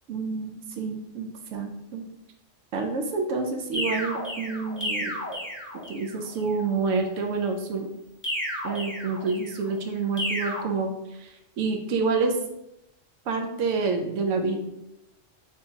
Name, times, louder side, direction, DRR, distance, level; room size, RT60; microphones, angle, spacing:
voice 1, 0.1-2.1 2.7-5.1 5.9-7.9 8.6-12.4 13.3-14.6, right 4 dB, 85° right, 4 dB, 0.9 m, -28 dB
Electric Loop, 3.7-6.2 8.2-9.6 10.2-10.6, equal, 10° left, 0.9 m, -32 dB
4.3 x 2.8 x 3.6 m, 0.85 s
omnidirectional pair, 1.3 m